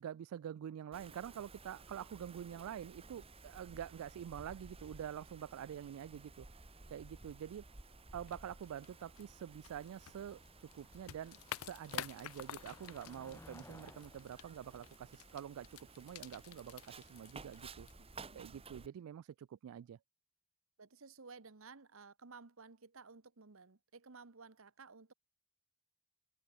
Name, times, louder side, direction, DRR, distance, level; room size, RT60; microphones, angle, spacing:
voice 1, 0.0-6.5 6.9-7.6 8.1-17.9 18.3-20.0, right 9 dB, 85° right, 0.3 m, -47 dB
Wind, 0.9-18.9, right 3 dB, 25° right, 1.6 m, -56 dB
Motor vehicle (road), 5.8-16.1, left 1 dB, 15° left, 0.9 m, -63 dB
sound 1, 8.2-18.5, left 10 dB, 80° left, 0.5 m, -51 dB
voice 2, 18.0-18.6 20.8-25.1, right 4 dB, 70° right, 1.2 m, -56 dB
head